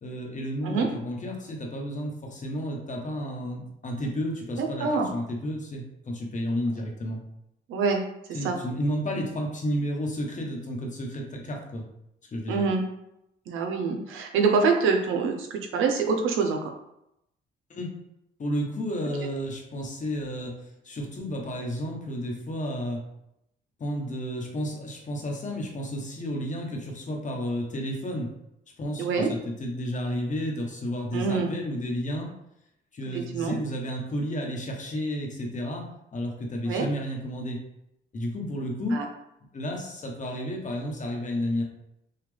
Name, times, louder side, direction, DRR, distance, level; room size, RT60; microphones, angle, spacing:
voice 1, 0.0-7.2 8.3-11.8 12.3-12.7 17.7-17.9 18.4-20.5 20.8-23.0 23.8-28.3 28.8-32.3 32.9-37.6 38.1-39.0 39.5-41.6, equal, 40° left, 1 dB, 1.2 m, -32 dB
voice 2, 4.6-5.1 7.7-8.0 8.4-8.6 12.5-12.8 13.5-16.7 29.0-29.3 31.1-31.5 33.1-33.6 36.7-36.9 38.9-39.0, right 4 dB, 90° right, 3 dB, 0.8 m, -25 dB
5.7 x 2.4 x 3.4 m, 0.81 s
cardioid pair, 90°, 20 cm